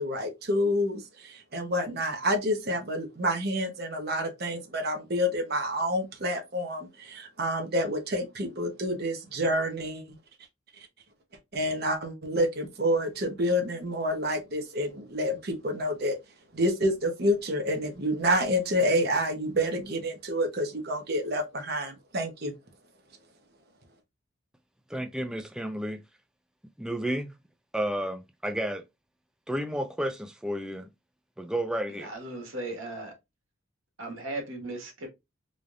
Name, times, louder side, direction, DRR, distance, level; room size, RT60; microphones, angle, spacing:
voice 1, 0.0-10.2 11.5-16.2 16.5-22.5, equal, 50° right, 0.9 m, -28 dB
voice 2, 24.9-26.0 26.8-27.3 27.7-28.8 29.5-30.9 31.4-32.1, right 1 dB, 5° right, 0.3 m, -31 dB
voice 3, 32.0-33.2 34.0-35.1, right 2 dB, 80° right, 1.7 m, -37 dB
3.8 x 3.3 x 2.5 m
head